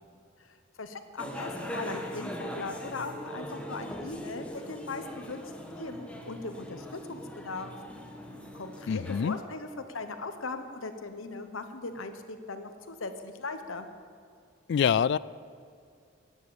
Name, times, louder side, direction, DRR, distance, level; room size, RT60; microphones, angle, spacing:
voice 1, 0.8-5.4 5.8-7.8 8.5-13.9, left 3 dB, 90° left, 8 dB, 1.2 m, -39 dB
sound 1, 1.2-9.4, equal, 5° left, 1.3 m, -41 dB
voice 2, 8.9-9.4 14.7-15.2, left 7 dB, 60° left, 20 dB, 0.3 m, -25 dB
15.5 x 9.8 x 7.1 m, 2.3 s
head